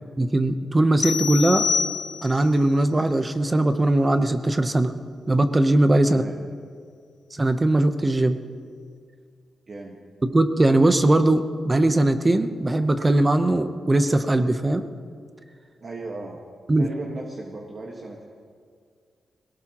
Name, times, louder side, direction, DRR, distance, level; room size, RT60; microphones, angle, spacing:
voice 1, 0.2-1.7 2.2-4.9 5.3-6.2 7.3-8.4 10.2-14.8 16.7-16.9, right 1 dB, 20° right, 9 dB, 0.9 m, -20 dB
sound 1, 1.0-2.5, left 6 dB, 55° left, 0.8 m, -26 dB
voice 2, 9.7-10.0 15.8-16.4 16.8-18.2, right 3 dB, 45° right, -1 dB, 1.6 m, -36 dB
21.5 x 18.0 x 3.1 m, 2.1 s
cardioid pair, 110°, 0 cm